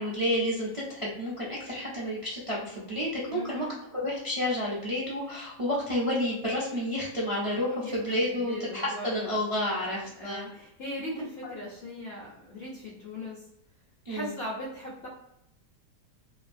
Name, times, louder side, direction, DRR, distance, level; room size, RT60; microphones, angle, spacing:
voice 1, 0.0-3.7 3.9-10.5 11.1-11.5 14.0-14.3, left 1 dB, 40° right, -6 dB, 0.4 m, -30 dB
voice 2, 3.3-3.8 7.8-9.4 9.7-13.4 14.1-15.1, equal, 55° left, -5 dB, 0.7 m, -39 dB
2.8 x 2.4 x 2.5 m, 0.83 s
omnidirectional pair, 1.7 m